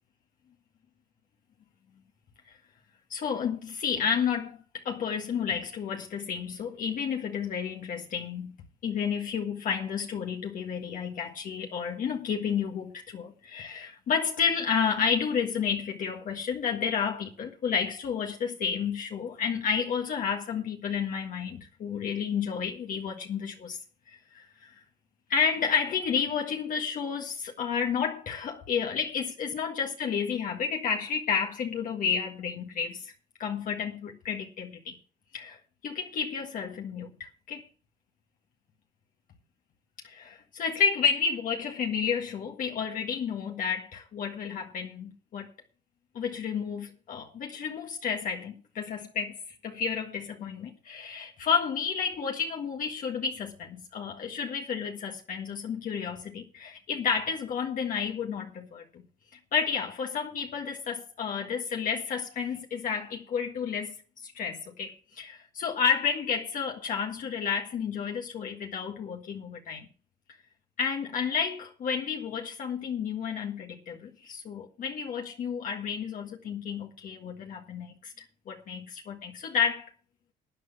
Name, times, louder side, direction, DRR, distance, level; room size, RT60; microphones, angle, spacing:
voice 1, 3.1-4.6 4.9-8.6 8.8-23.8 24.1-24.7 25.3-27.3 27.6-33.1 33.4-34.8 35.3-37.1 37.5-37.7 40.0-45.5 46.2-59.0 59.5-64.0 64.2-69.9 70.8-78.1 78.5-79.9, left 6 dB, 55° left, 1.8 m, -31 dB
13.0 x 9.5 x 5.6 m
cardioid pair, 110°, 17 cm